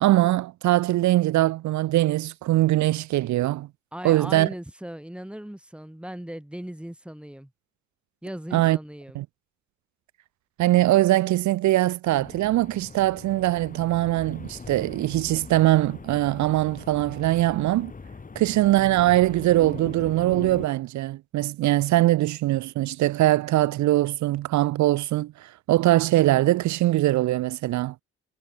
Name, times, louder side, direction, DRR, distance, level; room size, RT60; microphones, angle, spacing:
voice 1, 0.0-3.7 4.0-4.5 8.5-8.8 9.2-9.3 10.6-17.9 18.4-27.9, right 16 dB, 70° right, 0.5 m, -22 dB
voice 2, 3.9-7.5 8.2-9.2, equal, 5° right, 2.7 m, -38 dB
sound 1, 12.1-20.7, left 4 dB, 25° left, 2.8 m, -41 dB
cardioid pair, 90°, 30 cm